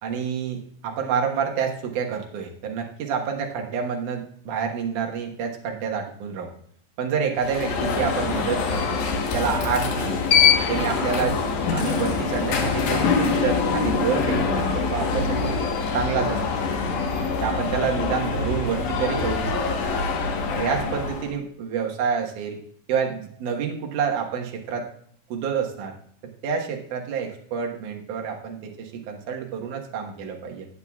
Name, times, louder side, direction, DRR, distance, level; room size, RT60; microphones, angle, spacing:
voice 1, 0.0-6.5 7.0-10.3 10.7-11.4 11.7-15.6 15.9-16.7 17.4-19.6 20.5-22.6 22.9-24.9 25.3-26.0 26.4-30.7, right 6 dB, 60° right, 1 dB, 2.5 m, -28 dB
Alarm, 7.4-21.3, left 5 dB, 60° left, 2.3 m, -24 dB
19.5 x 7.9 x 2.4 m, 0.65 s
omnidirectional pair, 4.7 m